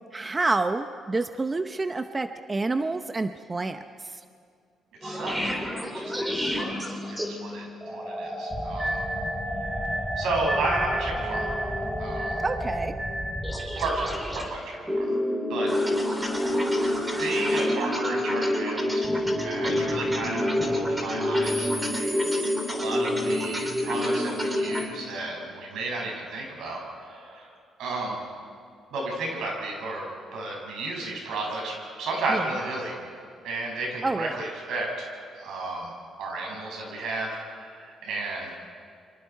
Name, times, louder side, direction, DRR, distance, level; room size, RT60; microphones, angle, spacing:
voice 1, 0.1-3.8 4.1-4.2 12.4-12.9 32.3-32.4 34.0-34.4, right 3 dB, 25° right, 9 dB, 0.7 m, -28 dB
sound 1, 5.0-24.8, left 1 dB, 10° right, 3.3 m, -28 dB
voice 2, 5.0-5.7 5.9-9.0 10.2-11.5 12.0-12.4 13.8-15.1 15.5-15.7 17.1-19.1 19.4-26.8 27.1-27.5 27.8-28.2 28.9-32.9 33.4-35.1 35.3-35.9 36.2-38.5, right 2 dB, 80° right, 0 dB, 6.6 m, -33 dB
28.0 x 24.5 x 4.6 m, 2.3 s
cardioid pair, 95°, 0 cm